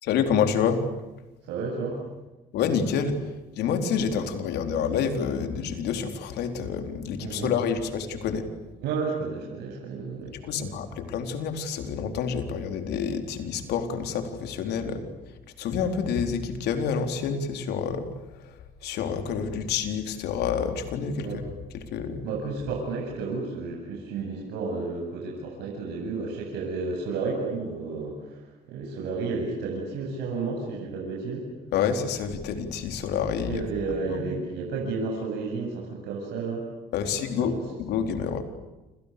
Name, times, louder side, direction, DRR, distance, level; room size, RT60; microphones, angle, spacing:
voice 1, 0.0-0.8 2.5-8.5 10.4-15.1 15.6-21.3 21.7-22.3 31.7-34.3 36.9-38.4, left 6 dB, 80° left, 6 dB, 4.1 m, -28 dB
voice 2, 1.5-2.0 7.2-7.5 8.8-10.7 14.8-15.0 21.2-21.4 22.2-31.5 33.5-36.7 37.0-37.6, right 4 dB, 85° right, -1 dB, 8.0 m, -32 dB
29.5 x 29.0 x 6.9 m, 1.1 s
cardioid pair, 110°, 17 cm